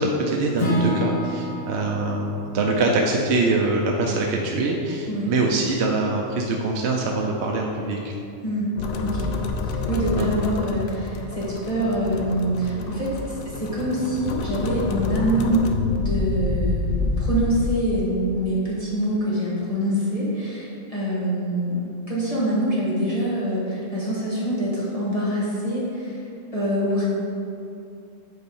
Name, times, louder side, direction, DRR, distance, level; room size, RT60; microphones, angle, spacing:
voice 1, 0.0-8.0 10.1-10.3, right 2 dB, 60° right, 0 dB, 0.8 m, -23 dB
Acoustic guitar / Strum, 0.6-4.6, equal, 45° left, 1.5 m, -29 dB
sound 1, 8.8-17.7, left 3 dB, 65° left, 0.9 m, -28 dB
voice 2, 9.0-9.3 9.7-15.6 16.0-16.9 17.2-21.8 22.1-26.2 26.5-27.1, right 1 dB, 25° left, -8 dB, 1.7 m, -25 dB
8.1 x 4.2 x 5.4 m, 2.5 s
omnidirectional pair, 1.5 m